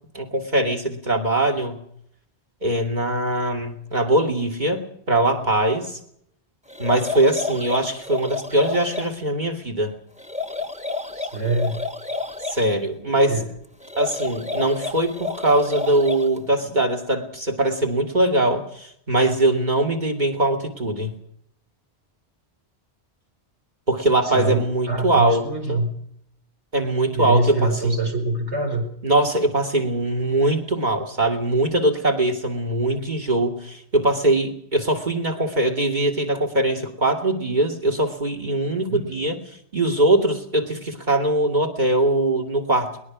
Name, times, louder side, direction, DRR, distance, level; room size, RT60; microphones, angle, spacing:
voice 1, 0.1-1.8 2.6-6.0 6.8-9.9 12.5-13.3 14.0-21.1 23.9-25.8 26.7-28.0 29.0-39.4 39.7-42.9, right 1 dB, 45° right, 2 dB, 2.8 m, -22 dB
sound 1, 6.7-9.1 10.2-12.6 13.8-16.4, left 3 dB, 5° right, 1.1 m, -30 dB
voice 2, 11.1-11.8 13.1-13.5 24.2-25.9 27.1-28.8 38.9-39.2, right 2 dB, 85° right, 3 dB, 5.1 m, -25 dB
21.5 x 20.0 x 6.2 m, 0.70 s
omnidirectional pair, 1.1 m